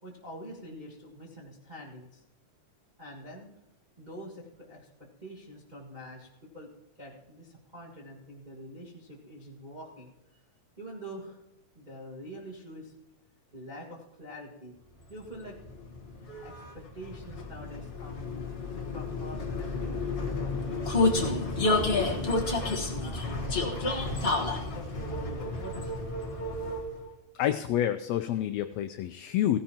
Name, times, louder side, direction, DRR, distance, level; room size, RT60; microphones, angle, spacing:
voice 1, 0.0-2.2 3.0-3.5 4.0-6.7 7.0-10.4 10.8-11.4 11.7-12.9 13.5-14.7 15.1-15.6 16.4-18.5 18.9-20.9 21.2-26.0, equal, 20° right, -4 dB, 1.3 m, -46 dB
Vehicle, 15.2-27.1, left 2 dB, 40° left, 0.8 m, -30 dB
voice 2, 27.3-29.6, left 11 dB, 80° left, 8 dB, 1.6 m, -28 dB
16.5 x 16.0 x 2.9 m, 0.94 s
omnidirectional pair, 3.3 m